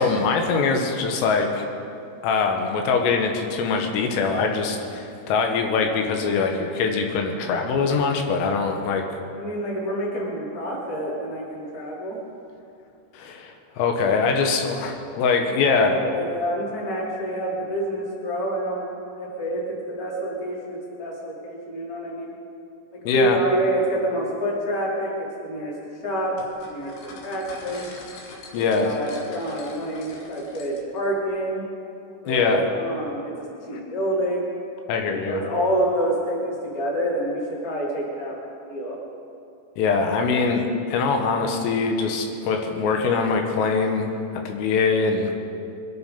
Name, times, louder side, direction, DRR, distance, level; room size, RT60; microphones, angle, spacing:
voice 1, 0.0-1.7 2.2-9.2 13.1-16.0 23.1-23.4 28.5-28.9 32.3-32.7 34.9-35.4 39.8-44.1 44.5-45.4, left 4 dB, 85° left, 3 dB, 3.9 m, -23 dB
voice 2, 9.4-12.2 15.4-18.8 19.1-22.3 22.9-25.8 26.0-26.4 26.6-27.9 28.5-31.6 32.2-33.3 33.7-34.5 35.0-38.4 38.7-39.0, right 1 dB, 25° left, -5 dB, 2.7 m, -27 dB
sound 1, 26.4-31.0, left 3 dB, 65° left, 3.8 m, -44 dB
22.5 x 10.5 x 5.3 m, 2.6 s
omnidirectional pair, 5.7 m